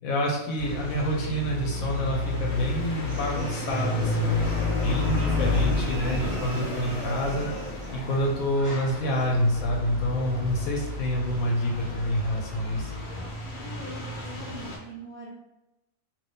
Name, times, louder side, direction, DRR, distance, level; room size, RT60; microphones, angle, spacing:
voice 1, 0.0-7.5 7.9-12.9, equal, 70° left, -1 dB, 1.1 m, -27 dB
sound 1, 0.6-14.8, left 3 dB, 55° left, 0.5 m, -31 dB
sound 2, 3.1-8.0, right 4 dB, 70° right, 0.8 m, -41 dB
sound 3, 6.2-13.3, left 1 dB, 25° left, 0.8 m, -46 dB
voice 2, 13.4-15.3, right 1 dB, 30° right, -7 dB, 0.8 m, -42 dB
2.7 x 2.6 x 3.3 m, 0.96 s
omnidirectional pair, 1.6 m